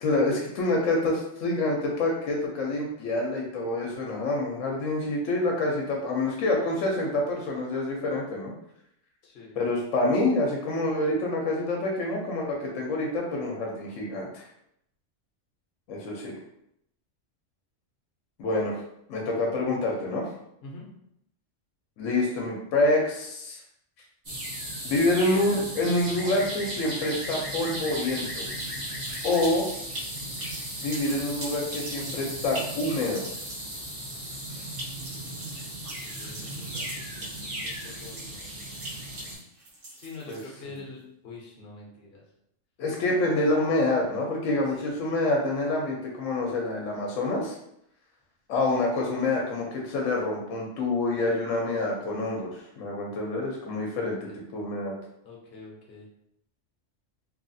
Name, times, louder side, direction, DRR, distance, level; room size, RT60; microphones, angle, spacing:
voice 1, 0.0-8.5 9.6-14.4 15.9-16.3 18.4-18.8 19.1-20.3 22.0-23.6 24.8-28.5 29.2-29.6 30.8-33.3 34.5-34.6 40.3-40.4 42.8-47.5 48.5-54.2 54.5-54.9, left 2 dB, 85° left, -1 dB, 1.0 m, -27 dB
voice 2, 9.2-9.5 20.6-20.8 36.0-37.5 37.8-38.6 39.1-39.2 39.9-42.2 44.8-44.9 53.9-54.4 55.2-56.1, left 3 dB, 60° left, -3 dB, 0.9 m, -45 dB
sound 1, 24.2-39.3, right 1 dB, 40° right, 1.0 m, -36 dB
sound 2, 28.3-40.8, right 1 dB, 75° right, 1.3 m, -42 dB
3.0 x 2.4 x 2.6 m, 0.76 s
omnidirectional pair, 1.3 m